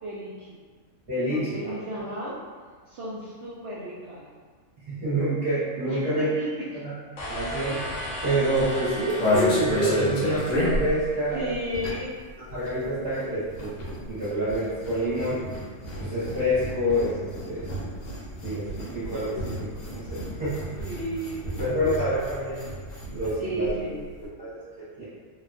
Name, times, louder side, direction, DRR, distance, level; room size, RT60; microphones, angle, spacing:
voice 1, 0.0-0.6 1.3-2.4 2.9-4.3 5.8-6.9 11.3-12.1 20.8-21.8 23.4-24.0, right 1 dB, 70° right, -7 dB, 0.6 m, -34 dB
voice 2, 1.1-1.7 4.8-6.3 6.8-6.9 7.3-11.5 12.5-15.4 16.0-17.6 18.4-20.6 21.6-22.7 23.0-23.8 24.4-25.0, equal, 40° right, -16 dB, 1.2 m, -27 dB
sound 1, 7.2-11.4, left 1 dB, 60° left, 0.9 m, -35 dB
sound 2, 8.5-12.2 12.4-23.4 23.6-23.7 24.0-24.3, left 1 dB, 85° left, 1.3 m, -31 dB
3.1 x 2.2 x 2.5 m, 1.5 s
omnidirectional pair, 1.5 m